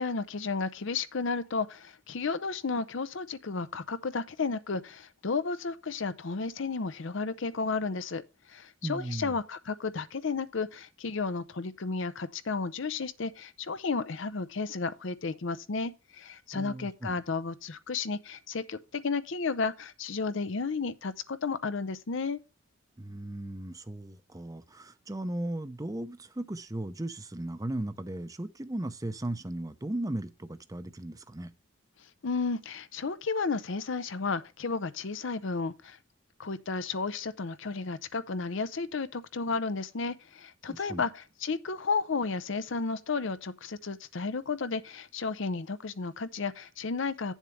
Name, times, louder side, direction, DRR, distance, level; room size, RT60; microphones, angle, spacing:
voice 1, 0.0-8.2 8.5-22.4 32.2-36.0 36.4-47.3, left 4 dB, 60° left, 0.6 m, -33 dB
voice 2, 8.8-9.3 16.5-17.1 23.0-31.5 40.7-41.0, right 1 dB, 15° right, 0.6 m, -36 dB
9.8 x 7.3 x 3.2 m
head